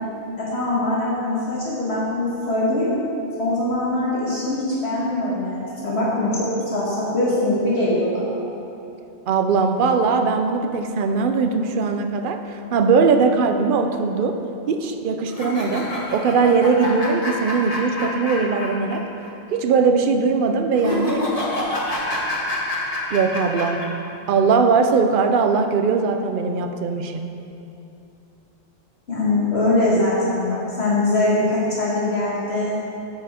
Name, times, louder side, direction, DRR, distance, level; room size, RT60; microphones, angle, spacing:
voice 1, 0.4-2.9 3.4-8.3 29.1-32.7, left 2 dB, 65° left, -7 dB, 1.7 m, -22 dB
voice 2, 9.3-14.4 14.7-19.1 19.5-21.3 23.1-23.9 24.3-27.3, right 4 dB, 55° right, 6 dB, 0.7 m, -20 dB
sound 1, 15.3-19.0 19.2-19.3 20.8-23.9, left 1 dB, 35° left, 1.3 m, -27 dB
13.0 x 4.8 x 4.3 m, 2.8 s
omnidirectional pair, 1.2 m